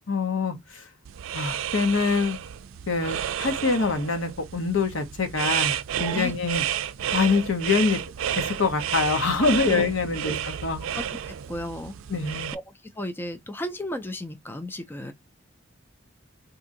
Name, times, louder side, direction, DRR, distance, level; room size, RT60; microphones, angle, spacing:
voice 1, 0.1-0.8 1.3-2.4 2.9-5.7 6.0-6.6 7.1-8.0 8.4-10.8 12.1-12.5, left 4 dB, 75° left, 0.9 m, -25 dB
sound 1, 1.1-12.6, right 10 dB, 85° right, 0.4 m, -31 dB
voice 2, 6.0-6.3 9.4-9.8 10.2-10.3 10.9-11.0 11.5-11.9 12.5-15.1, left 1 dB, 10° left, 0.3 m, -34 dB
2.7 x 2.6 x 3.7 m
head